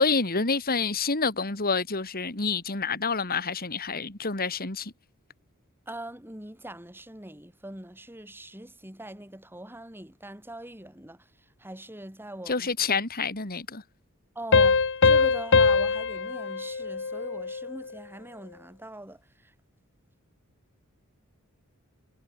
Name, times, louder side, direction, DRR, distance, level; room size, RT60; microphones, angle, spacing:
voice 1, 0.0-4.9 12.5-13.8, left 4 dB, 45° left, 2.7 m, -28 dB
voice 2, 5.9-12.7 14.4-19.5, right 1 dB, 10° right, 5.6 m, -42 dB
sound 1, 14.5-17.8, left 4 dB, 60° left, 1.1 m, -22 dB
head